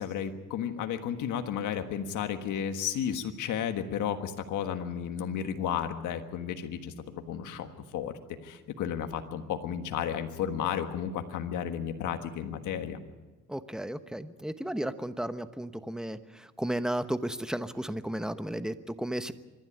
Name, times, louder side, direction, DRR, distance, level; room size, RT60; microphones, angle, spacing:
voice 1, 0.0-13.0, left 8 dB, 80° left, 7 dB, 1.5 m, -33 dB
voice 2, 13.5-19.3, right 1 dB, ahead, 11 dB, 1.0 m, -34 dB
25.5 x 11.5 x 9.8 m, 1.2 s
cardioid pair, 90°, 30 cm